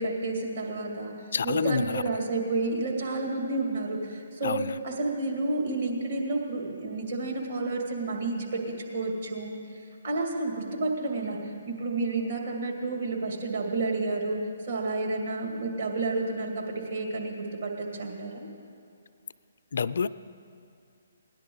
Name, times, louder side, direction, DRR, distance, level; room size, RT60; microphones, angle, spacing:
voice 1, 0.0-1.1 1.4-9.5 10.0-11.4 11.7-18.5, right 3 dB, 60° right, -1 dB, 2.3 m, -30 dB
voice 2, 1.3-2.0 4.4-4.8 19.7-20.1, left 6 dB, 65° left, 14 dB, 0.3 m, -28 dB
17.5 x 10.5 x 3.9 m, 2.5 s
figure-of-eight pair, 140°, 0 cm